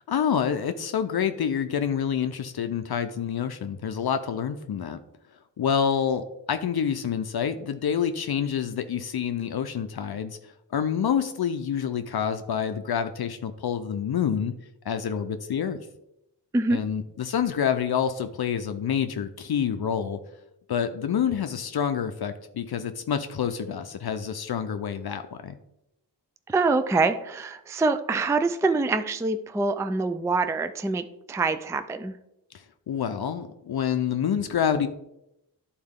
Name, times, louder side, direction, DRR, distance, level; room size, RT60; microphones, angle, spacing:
voice 1, 0.1-5.0 5.6-10.4 10.7-14.5 14.8-15.8 16.7-20.2 20.7-25.6 32.9-34.9, left 8 dB, 60° left, 9 dB, 0.6 m, -27 dB
voice 2, 26.5-32.2, right 3 dB, 5° right, 10 dB, 0.4 m, -25 dB
11.0 x 4.3 x 3.6 m, 0.85 s
wide cardioid pair, 90°, 44 cm